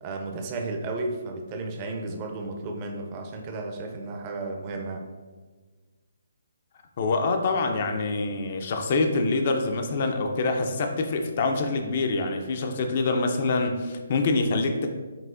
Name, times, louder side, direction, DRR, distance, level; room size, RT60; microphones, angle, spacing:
voice 1, 0.0-5.0, right 3 dB, 25° right, 2 dB, 0.5 m, -33 dB
voice 2, 7.0-14.9, left 3 dB, 45° left, 5 dB, 0.4 m, -25 dB
5.4 x 2.7 x 2.5 m, 1.4 s
hypercardioid pair, 155°, 0 cm